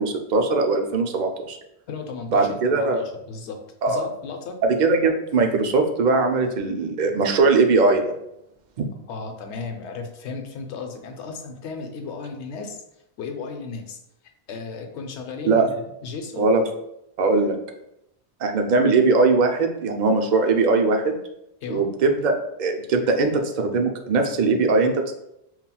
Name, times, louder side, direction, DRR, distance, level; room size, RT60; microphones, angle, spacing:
voice 1, 0.0-1.6 2.3-3.0 3.8-4.1 4.6-8.1 15.4-15.6 16.4-16.6 17.2-17.6 18.4-21.2 21.7-22.3 22.6-25.1, right 3 dB, 55° right, 4 dB, 0.5 m, -20 dB
voice 2, 1.9-3.6 3.9-4.6 9.1-12.8 13.2-14.0 14.5-16.5 21.6-21.9, left 4 dB, 85° left, 4 dB, 0.9 m, -35 dB
5.5 x 2.4 x 2.2 m, 0.82 s
omnidirectional pair, 1.1 m